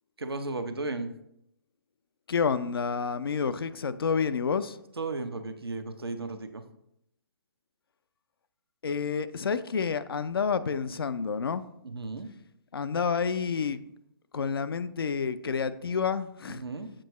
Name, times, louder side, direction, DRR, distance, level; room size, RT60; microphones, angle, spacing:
voice 1, 0.2-1.1 5.0-6.6 11.8-12.3 16.6-16.9, right 3 dB, 85° right, 7 dB, 0.7 m, -34 dB
voice 2, 2.3-4.8 8.8-11.6 12.7-13.8 14.3-16.6, left 6 dB, 75° left, 13 dB, 0.4 m, -29 dB
7.5 x 4.6 x 3.0 m, 0.77 s
figure-of-eight pair, 130°, 12 cm